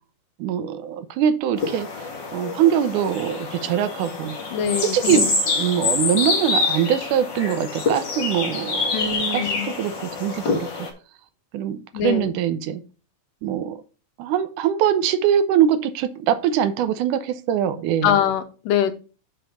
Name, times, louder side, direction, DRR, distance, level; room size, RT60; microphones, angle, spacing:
voice 1, 0.4-4.4 4.8-9.0 9.3-9.5 9.8-10.7 11.5-12.8 13.4-13.8 14.2-18.2, right 9 dB, 80° right, 11 dB, 2.1 m, -23 dB
sound 1, 1.6-10.9, left 4 dB, 40° left, 2.0 m, -26 dB
voice 2, 4.5-5.4 8.9-9.7 11.9-12.3 18.0-18.9, left 8 dB, 85° left, 9 dB, 2.4 m, -23 dB
6.0 x 5.3 x 5.5 m, 0.35 s
omnidirectional pair, 3.7 m